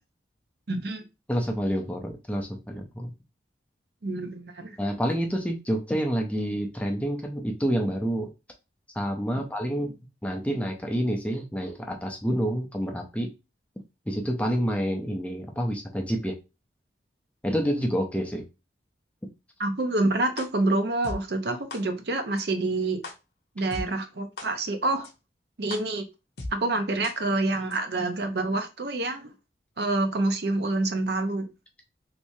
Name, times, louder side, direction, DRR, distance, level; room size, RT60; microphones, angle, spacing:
voice 1, 0.7-1.0 4.0-4.8 19.6-23.0 23.6-25.1 25.6-26.1 26.5-29.3 29.8-31.5, right 2 dB, 60° right, 0.6 m, -27 dB
voice 2, 1.3-3.1 4.8-8.3 9.0-9.9 10.2-13.3 14.1-16.4 17.4-18.4, equal, 5° left, 0.4 m, -28 dB
sound 1, 20.4-20.5 21.0-21.1 21.7-21.8 22.4-22.5 23.0-23.1 23.7-23.8 24.4-24.5 25.0-25.1 25.7-25.8 26.4-26.5 27.0-27.1 27.7-27.8, left 2 dB, 55° left, 0.7 m, -36 dB
3.2 x 3.1 x 2.6 m
head